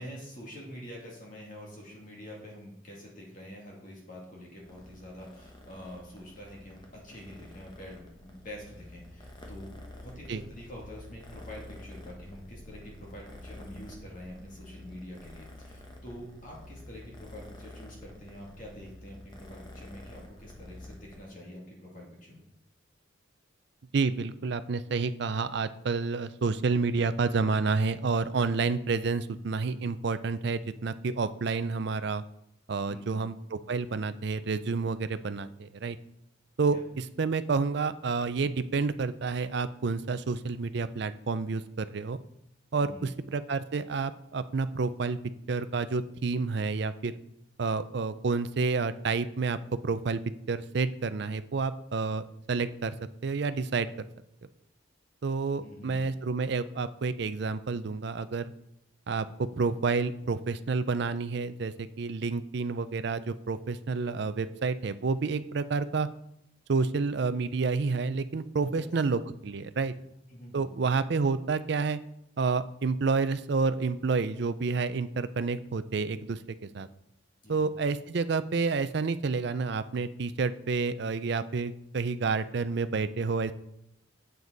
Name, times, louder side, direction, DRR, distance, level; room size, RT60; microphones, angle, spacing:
voice 1, 0.0-22.5 32.8-33.2 36.7-36.8 42.7-43.2 55.6-56.0 68.6-68.9 70.3-70.7 77.4-77.6, equal, 40° left, -3 dB, 2.4 m, -46 dB
Purr, 4.6-21.2, left 1 dB, 20° left, 1.1 m, -49 dB
voice 2, 23.9-32.2 32.7-36.0 36.6-42.2 42.7-45.2 45.5-47.1 47.6-49.6 49.8-50.2 50.5-52.9 53.2-53.9 55.2-58.5 59.1-66.1 66.7-69.9 70.5-72.0 72.4-76.4 76.7-76.9 77.5-83.5, right 4 dB, 55° right, 13 dB, 0.4 m, -29 dB
7.9 x 7.3 x 4.0 m, 0.79 s
head